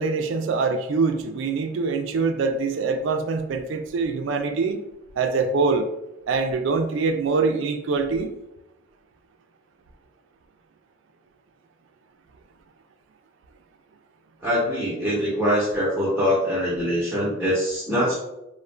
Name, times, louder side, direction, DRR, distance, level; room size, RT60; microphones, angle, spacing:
voice 1, 0.0-4.8 5.2-5.9 6.3-8.3, right 4 dB, 65° right, 0.3 m, -24 dB
voice 2, 14.4-18.1, equal, 5° right, 0.7 m, -23 dB
2.4 x 2.1 x 3.1 m
head